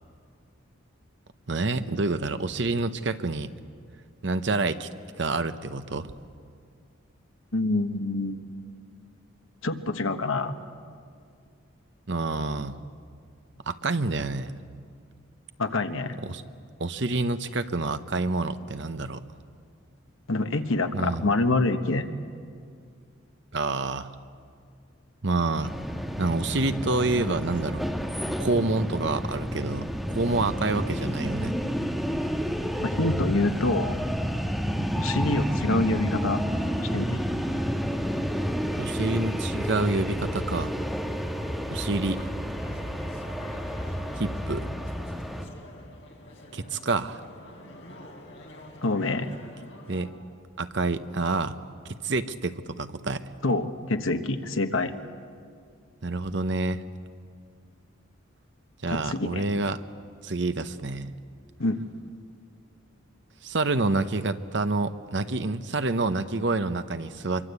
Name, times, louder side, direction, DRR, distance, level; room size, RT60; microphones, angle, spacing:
voice 1, 1.5-3.5 4.2-4.9 5.2-6.1 12.1-12.8 13.7-14.5 16.2-16.4 16.8-19.2 20.9-21.3 23.5-24.1 25.2-25.7 26.2-27.9 28.4-31.6 38.8-40.7 41.7-42.3 44.2-44.7 46.5-47.2 49.9-50.1 50.6-51.6 51.9-53.3 56.0-56.8 58.8-59.8 60.2-61.1 63.4-67.5, right 3 dB, 60° right, 11 dB, 0.9 m, -28 dB
voice 2, 7.5-8.4 9.6-10.6 15.6-16.2 20.3-22.2 32.8-34.0 34.9-36.4 36.9-37.2 48.8-49.3 53.4-54.9 58.9-59.4 61.6-61.8, left 2 dB, 80° left, 7 dB, 1.4 m, -26 dB
sound 1, 25.6-45.5, equal, ahead, 1.6 m, -30 dB
sound 2, 41.0-50.1, left 1 dB, 65° left, 3.6 m, -47 dB
25.0 x 23.5 x 8.2 m, 2.2 s
head